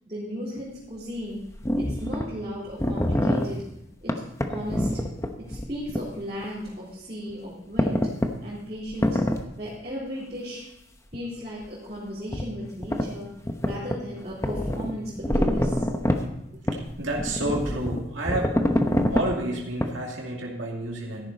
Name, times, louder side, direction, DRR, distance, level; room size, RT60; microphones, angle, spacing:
voice 1, 0.1-1.4 1.8-3.6 4.0-4.2 4.5-5.0 5.4-8.1 8.4-9.2 9.5-10.6 11.1-13.3 13.6-15.9 16.5-16.6, equal, 35° right, -9 dB, 3.7 m, -35 dB
sound 1, 0.6-0.7 1.5-2.3 2.7-3.4 4.1-6.1 6.4-6.5 7.8-8.3 8.9-9.4 11.1-11.2 12.3-12.5 12.8-13.1 13.4-14.0 14.3-16.2 16.7-19.3 19.8-19.9, left 1 dB, 15° left, 0.8 m, -25 dB
voice 2, 16.7-18.6 19.1-21.3, right 1 dB, 90° right, -2 dB, 2.4 m, -30 dB
13.5 x 11.5 x 4.1 m, 0.88 s
head